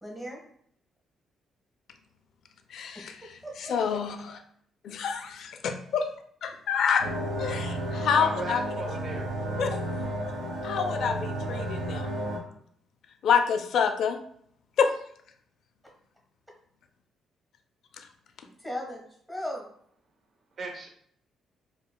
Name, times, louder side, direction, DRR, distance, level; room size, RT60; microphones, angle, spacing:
voice 1, 0.0-0.4 2.9-3.8 15.8-15.9 18.4-19.7, equal, 5° right, -1 dB, 1.2 m, -38 dB
voice 2, 2.7-3.2 3.7-4.4 4.8-6.1 6.4-7.1 7.4-8.6 9.1-9.8 10.6-12.1 13.2-14.2 14.8-14.9, left 6 dB, 65° left, 6 dB, 0.4 m, -27 dB
sound 1, 7.0-12.4, right 1 dB, 75° right, 0.8 m, -32 dB
voice 3, 7.8-9.3 20.6-20.9, right 3 dB, 45° right, 2 dB, 0.6 m, -37 dB
5.3 x 2.1 x 2.2 m, 0.64 s
cardioid pair, 130°, 0 cm